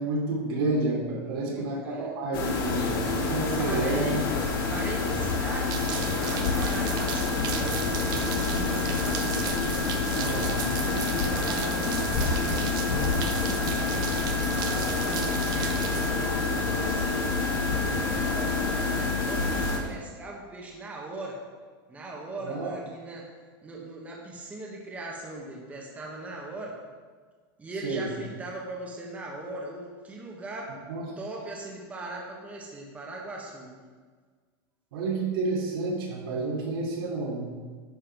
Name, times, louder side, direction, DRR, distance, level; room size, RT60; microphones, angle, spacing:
voice 1, 0.0-4.2 10.1-10.6 22.4-22.7 27.8-28.1 30.9-31.0 34.9-37.5, right 3 dB, 80° right, -2 dB, 3.2 m, -30 dB
voice 2, 1.2-2.1 3.6-4.2 4.7-9.5 10.7-12.9 14.2-21.4 21.9-23.2 23.6-26.7 27.6-30.7 31.2-33.7, right 2 dB, 10° right, -2 dB, 1.3 m, -40 dB
sound 1, 2.3-19.8, left 4 dB, 65° left, 2.3 m, -27 dB
sound 2, 5.7-16.1, right 8 dB, 35° right, 0.9 m, -35 dB
10.5 x 5.6 x 6.0 m, 1.5 s
supercardioid pair, 160°, 12 cm